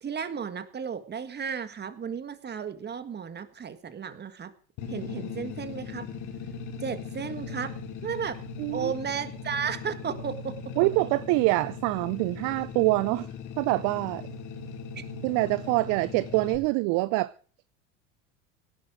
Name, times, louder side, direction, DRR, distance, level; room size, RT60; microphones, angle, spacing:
voice 1, 0.0-4.5 4.9-6.1 6.8-7.7 8.0-8.4 8.7-10.5 15.0-15.1, right 7 dB, 25° right, 1.8 m, -34 dB
sound 1, 4.8-16.6, left 5 dB, 50° left, 3.0 m, -39 dB
voice 2, 8.6-8.9 10.8-13.3 13.6-14.3 15.2-17.3, right 22 dB, 50° right, 0.6 m, -25 dB
17.5 x 12.0 x 5.1 m
hypercardioid pair, 85°, 39 cm